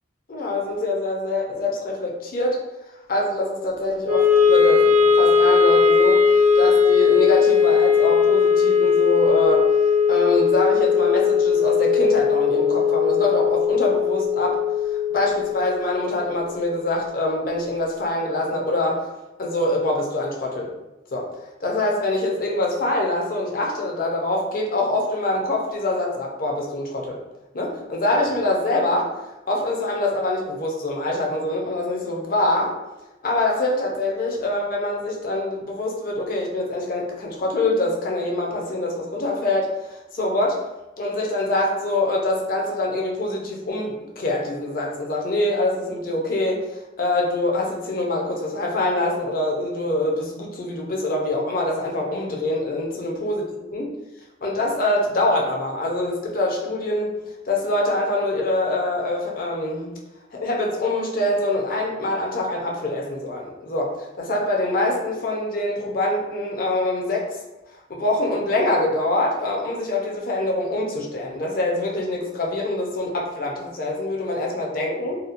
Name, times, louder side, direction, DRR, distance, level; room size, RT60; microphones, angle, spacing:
voice 1, 0.3-2.6 3.1-6.2 6.5-9.7 10.1-19.1 19.4-20.7 21.1-21.3 21.6-27.2 27.5-29.1 29.5-32.8 33.2-40.6 41.0-46.6 47.0-53.9 54.4-57.1 57.5-59.9 60.3-67.4 67.9-75.2, left 2 dB, 50° left, -1 dB, 0.5 m, -24 dB
Wind instrument woodwind instrument, 4.0-16.3, left 6 dB, 40° right, 0.3 m, -18 dB
2.8 x 2.1 x 2.5 m, 0.99 s
head